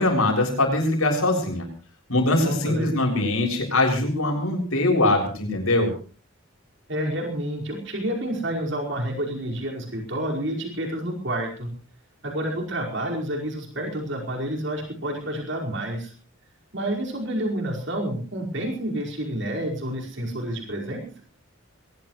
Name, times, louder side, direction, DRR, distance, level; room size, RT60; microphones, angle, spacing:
voice 1, 0.0-1.7 2.1-5.9, left 2 dB, 85° left, 2 dB, 6.9 m, -22 dB
voice 2, 2.4-3.2 6.9-11.7 12.2-16.1 16.7-21.2, right 1 dB, 55° right, 0 dB, 5.1 m, -29 dB
22.5 x 19.0 x 3.2 m, 0.39 s
head